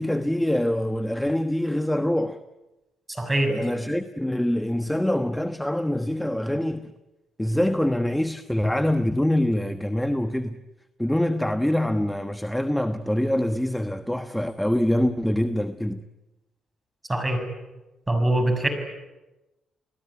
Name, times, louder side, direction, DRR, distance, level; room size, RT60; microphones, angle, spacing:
voice 1, 0.0-2.4 3.5-6.9 7.4-10.6 11.0-16.0, left 1 dB, 5° left, 1.2 m, -25 dB
voice 2, 3.1-3.6 17.1-17.5 18.1-18.7, right 1 dB, 15° right, 6.8 m, -23 dB
30.0 x 19.5 x 9.8 m
cardioid pair, 90°, 0 cm